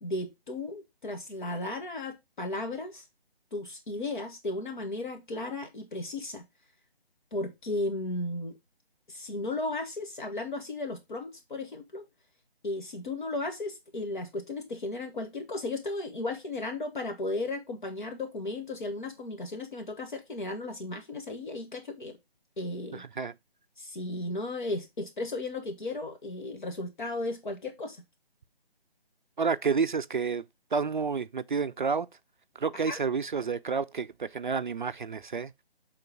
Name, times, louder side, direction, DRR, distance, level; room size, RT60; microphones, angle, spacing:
voice 1, 0.0-3.0 3.5-6.4 7.3-8.6 9.1-12.0 12.6-22.2 22.6-23.0 23.8-28.0 32.7-33.0, left 2 dB, 50° left, 1.4 m, -35 dB
voice 2, 22.9-23.3 29.4-30.4 30.7-32.1 32.6-35.5, right 5 dB, 50° right, 0.4 m, -30 dB
6.5 x 3.9 x 5.9 m
figure-of-eight pair, 155°, 31 cm